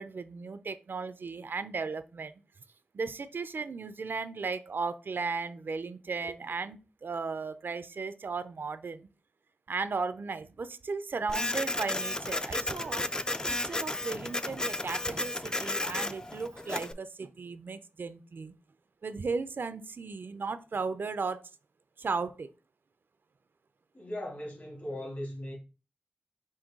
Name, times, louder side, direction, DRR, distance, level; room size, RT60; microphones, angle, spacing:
voice 1, 0.0-2.4 2.9-9.1 9.7-13.1 13.5-18.5 19.0-21.4 22.0-22.5, right 4 dB, 75° right, 0.4 m, -36 dB
Printer, 11.3-16.9, left 1 dB, 20° left, 0.3 m, -33 dB
voice 2, 23.9-25.5, left 1 dB, 60° left, 2.7 m, -38 dB
5.4 x 2.6 x 3.6 m
wide cardioid pair, 75°, 4 cm